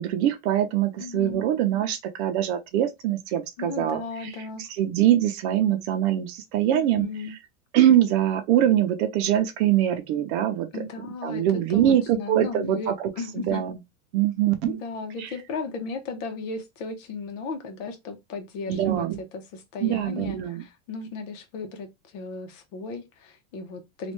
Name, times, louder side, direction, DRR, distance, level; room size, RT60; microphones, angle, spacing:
voice 1, 0.0-4.0 4.8-7.1 7.7-10.7 11.2-12.9 13.5-13.8 14.1-14.8 15.2-15.3 18.7-19.2 19.8-20.6, right 11 dB, 50° right, 0.7 m, -23 dB
voice 2, 1.0-1.4 3.6-4.7 6.7-7.4 10.7-11.4 11.7-13.6 14.6-24.1, left 4 dB, 60° left, 1.2 m, -35 dB
3.1 x 2.5 x 3.1 m
supercardioid pair, 160°, 43 cm